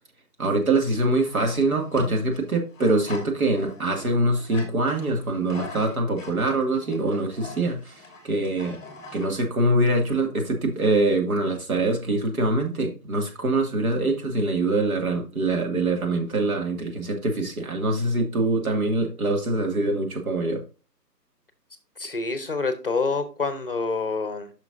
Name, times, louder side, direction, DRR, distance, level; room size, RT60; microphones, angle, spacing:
voice 1, 0.4-8.8 9.1-20.6, right 2 dB, 55° right, 3 dB, 2.2 m, -24 dB
sound 1, 0.8-9.3, left 2 dB, 5° left, 1.4 m, -42 dB
voice 2, 22.0-24.5, left 4 dB, 35° left, 10 dB, 0.8 m, -27 dB
10.5 x 5.9 x 2.6 m, 0.34 s
figure-of-eight pair, 145°, 50 cm